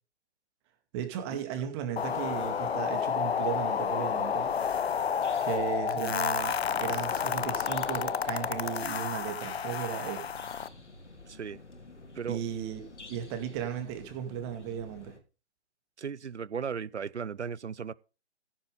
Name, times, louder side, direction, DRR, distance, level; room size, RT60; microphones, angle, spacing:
voice 1, 0.9-4.5 5.4-10.3 12.3-12.8 13.1-15.2, right 9 dB, 25° right, 2.2 m, -36 dB
sound 1, 2.0-10.7, left 7 dB, 60° left, 0.8 m, -30 dB
sound 2, 3.4-15.2, left 2 dB, 85° left, 3.0 m, -50 dB
voice 2, 11.3-11.6 12.1-12.4 16.0-17.9, right 6 dB, 75° right, 0.8 m, -36 dB
15.0 x 8.6 x 3.9 m
figure-of-eight pair, 140°, 34 cm